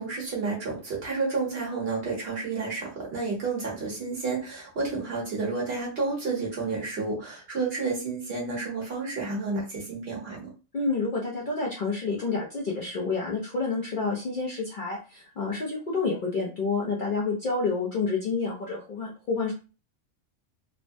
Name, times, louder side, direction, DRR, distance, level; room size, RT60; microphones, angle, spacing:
voice 1, 0.0-10.5, right 4 dB, 55° right, -3 dB, 1.3 m, -30 dB
voice 2, 10.7-19.5, left 4 dB, 50° left, -3 dB, 0.7 m, -29 dB
3.2 x 2.1 x 2.6 m, 0.34 s
omnidirectional pair, 1.3 m